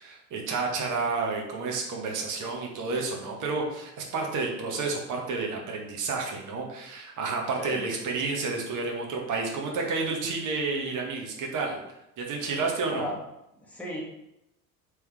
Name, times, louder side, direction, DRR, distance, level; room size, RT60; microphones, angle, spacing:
voice 1, 0.0-11.8 12.2-13.1, right 4 dB, 40° right, 0 dB, 1.0 m, -30 dB
voice 2, 13.6-14.0, left 1 dB, 5° left, -3 dB, 1.0 m, -34 dB
3.3 x 3.1 x 3.3 m, 0.85 s
figure-of-eight pair, 65°, 47 cm